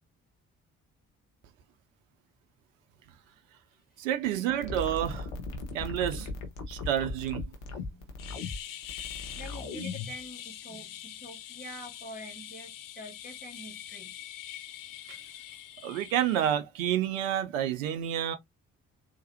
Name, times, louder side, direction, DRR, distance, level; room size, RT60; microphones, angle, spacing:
voice 1, 4.0-5.3 5.7-6.3 6.7-7.5 15.1-15.2 15.8-18.4, right 10 dB, 85° right, 0.6 m, -29 dB
sound 1, 4.6-10.2, left 3 dB, 80° left, 1.0 m, -37 dB
sound 2, 8.2-16.6, left 11 dB, 60° left, 0.7 m, -44 dB
voice 2, 9.3-14.2, equal, 25° left, 1.9 m, -46 dB
3.9 x 2.9 x 2.7 m
hypercardioid pair, 40°, 38 cm